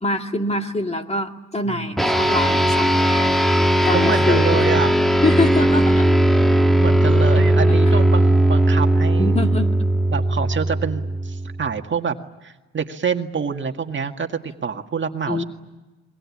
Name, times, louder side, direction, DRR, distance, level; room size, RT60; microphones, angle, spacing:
voice 1, 0.0-3.4 3.8-4.6 5.2-6.1 7.4-7.5 9.2-9.7 15.3-15.4, left 2 dB, 20° left, 4 dB, 2.3 m, -24 dB
sound 1, 2.0-11.7, right 1 dB, ahead, 1.5 m, -17 dB
voice 2, 3.9-4.9 6.5-9.3 10.1-12.2 12.4-15.4, right 6 dB, 40° right, 5 dB, 1.9 m, -26 dB
28.5 x 22.5 x 8.6 m, 1.2 s
cardioid pair, 90°, 30 cm